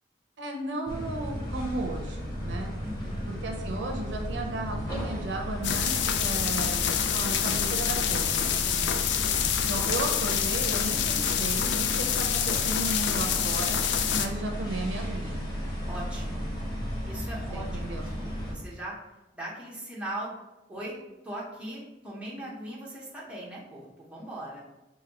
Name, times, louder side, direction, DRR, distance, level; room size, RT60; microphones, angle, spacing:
voice 1, 0.4-2.7 3.3-8.5 9.7-13.8 14.1-15.5 17.5-18.1, right 2 dB, 80° right, 3 dB, 0.6 m, -35 dB
sound 1, 0.9-18.5, equal, 20° left, 0.9 m, -34 dB
voice 2, 2.8-3.3 8.5-9.0 15.9-16.5 17.1-17.8 18.4-18.9 19.3-20.3 20.7-21.0 21.2-24.6, right 1 dB, 5° right, -6 dB, 0.9 m, -39 dB
sound 2, 5.6-14.3, left 9 dB, 70° left, 0.3 m, -27 dB
5.0 x 2.6 x 2.9 m, 0.98 s
head